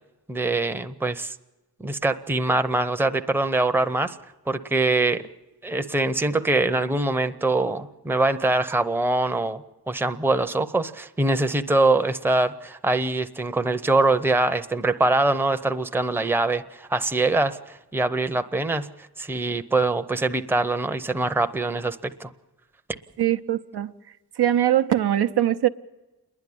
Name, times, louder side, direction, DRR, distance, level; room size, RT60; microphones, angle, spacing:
voice 1, 0.3-1.4 1.8-4.2 4.5-5.2 5.6-18.9 19.2-22.3, right 2 dB, 5° right, 0.6 m, -23 dB
voice 2, 23.2-23.9 24.4-25.7, right 12 dB, 80° right, 0.8 m, -21 dB
28.5 x 11.0 x 10.0 m
wide cardioid pair, 145°, 39 cm